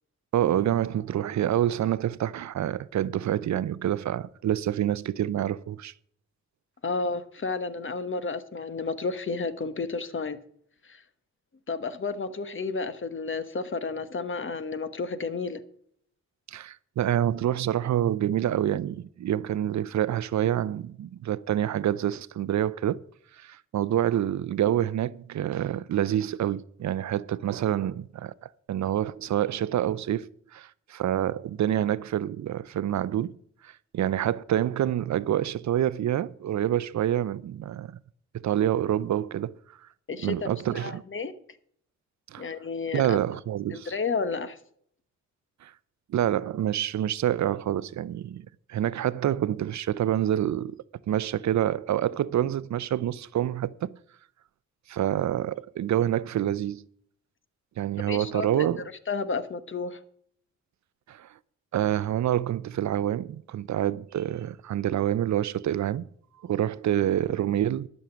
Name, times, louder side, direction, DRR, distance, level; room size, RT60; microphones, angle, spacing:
voice 1, 0.3-5.9 16.5-23.0 23.4-33.4 33.6-38.0 38.3-39.6 40.2-41.0 42.3-42.4 42.9-43.9 45.6-45.7 46.1-50.8 51.1-53.9 54.9-56.9 57.8-58.8 61.1-61.3 61.7-66.1 66.4-67.9, right 11 dB, 75° right, 0.5 m, -27 dB
voice 2, 6.8-10.4 10.9-11.0 11.7-15.6 40.1-41.3 42.4-43.2 43.7-44.6 58.1-58.7 59.1-60.0, left 4 dB, 45° left, 1.2 m, -31 dB
12.0 x 6.5 x 7.0 m
cardioid pair, 75°, 29 cm